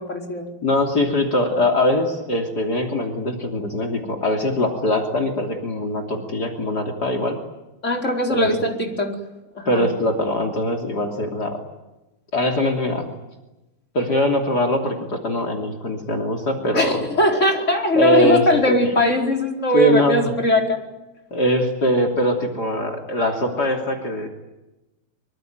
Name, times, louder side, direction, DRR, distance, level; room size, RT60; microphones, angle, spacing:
voice 1, 0.0-0.5 7.8-9.1 9.5-9.8 16.7-20.8, left 1 dB, 35° left, 2 dB, 4.9 m, -20 dB
voice 2, 0.6-7.4 8.3-8.5 9.7-11.6 12.3-13.1 13.9-17.1 18.0-18.9 19.7-20.2 21.3-24.3, left 1 dB, 50° left, 3 dB, 3.6 m, -22 dB
25.5 x 24.0 x 9.4 m, 0.98 s
omnidirectional pair, 2.3 m